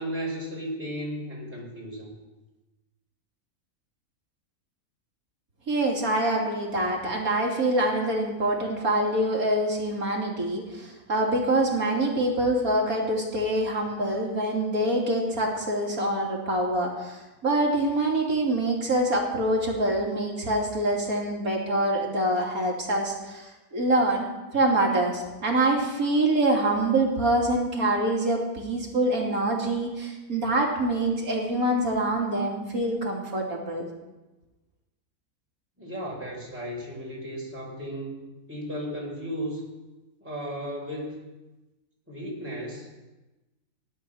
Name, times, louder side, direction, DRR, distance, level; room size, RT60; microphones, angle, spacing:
voice 1, 0.0-2.1 35.8-39.6 40.2-41.3 42.1-43.0, equal, 10° right, -3 dB, 4.1 m, -35 dB
voice 2, 5.7-24.3 24.5-33.8, right 1 dB, 70° right, -1 dB, 3.3 m, -25 dB
17.0 x 11.5 x 6.3 m, 1.1 s
omnidirectional pair, 1.5 m